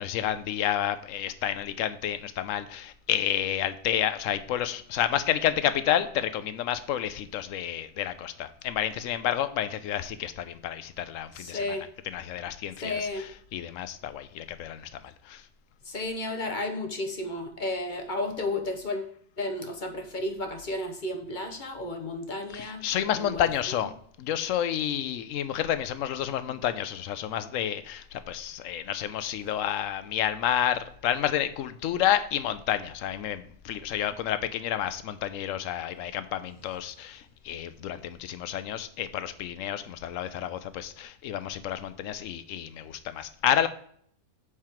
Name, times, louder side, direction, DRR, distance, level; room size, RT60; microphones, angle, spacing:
voice 1, 0.0-11.6 12.1-13.0 13.5-14.9 15.3-15.4 22.5-23.9 24.2-43.7, left 10 dB, 75° left, 12 dB, 0.9 m, -30 dB
voice 2, 11.4-11.9 12.8-13.3 15.8-23.9, left 2 dB, 40° left, 4 dB, 0.9 m, -33 dB
7.4 x 4.8 x 4.4 m, 0.62 s
omnidirectional pair, 1.5 m